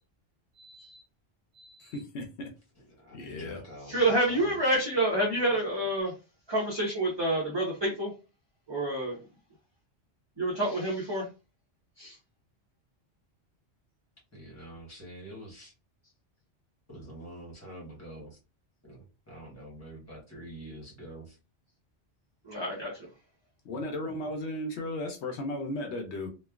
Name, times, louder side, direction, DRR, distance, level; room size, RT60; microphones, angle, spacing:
voice 1, 0.6-1.0 1.5-1.9 3.9-6.1 6.5-8.1 8.7-9.2 10.4-11.3 12.0-12.2 22.4-22.9, right 1 dB, 25° right, 0.8 m, -28 dB
voice 2, 1.8-2.5 3.1-3.6 23.6-26.3, left 1 dB, 80° left, 0.9 m, -35 dB
voice 3, 2.9-4.8 14.3-15.7 16.9-18.4 18.8-21.4, right 1 dB, 15° left, 1.1 m, -46 dB
3.1 x 2.2 x 2.3 m
omnidirectional pair, 1.1 m